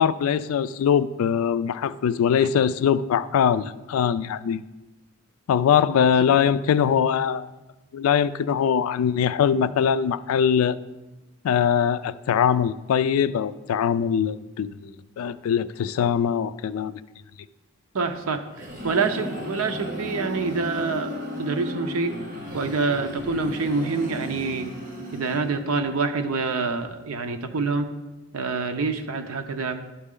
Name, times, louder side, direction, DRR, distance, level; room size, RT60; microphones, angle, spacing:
voice 1, 0.0-4.6 5.5-7.5 7.9-10.8 11.4-17.0, left 8 dB, 85° left, 15 dB, 0.3 m, -22 dB
voice 2, 17.9-22.1 22.5-24.7 25.1-27.9 28.3-29.8, right 4 dB, 90° right, 8 dB, 0.7 m, -26 dB
sound 1, 18.2-25.9, equal, 40° right, 1.3 m, -35 dB
12.0 x 4.1 x 3.7 m, 1.1 s
head